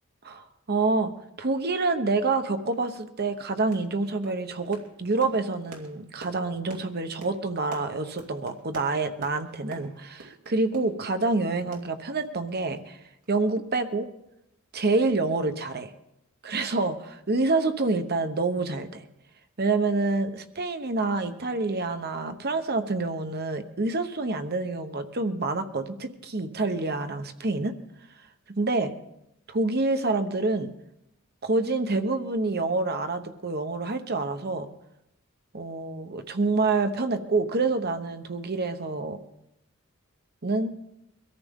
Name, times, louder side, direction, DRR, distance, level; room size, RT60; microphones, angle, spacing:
voice 1, 0.2-1.1 1.4-13.0 13.3-14.1 14.7-15.9 16.4-19.0 19.6-27.7 28.6-28.9 29.5-30.7 31.4-34.7 35.5-39.2 40.4-40.7, right 3 dB, 50° right, 8 dB, 1.0 m, -27 dB
sound 1, 2.7-2.9 3.2-3.4 3.7-4.0 4.2-11.4 11.7-12.5 12.8-12.9 13.2-13.3, right 2 dB, 90° right, 2.8 m, -47 dB
23.0 x 14.0 x 3.7 m, 0.85 s
head